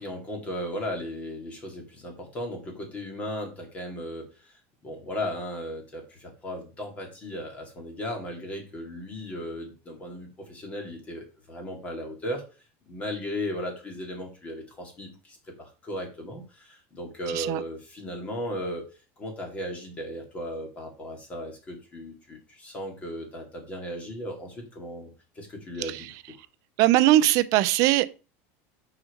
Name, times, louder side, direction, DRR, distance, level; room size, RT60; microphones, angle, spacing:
voice 1, 0.0-4.5 4.8-12.4 12.9-18.9 19.2-25.1 25.4-26.1, equal, 20° left, 2.3 m, -36 dB
voice 2, 26.8-28.0, right 15 dB, 45° right, 0.6 m, -20 dB
6.1 x 5.0 x 6.5 m
cardioid pair, 175°, 7 cm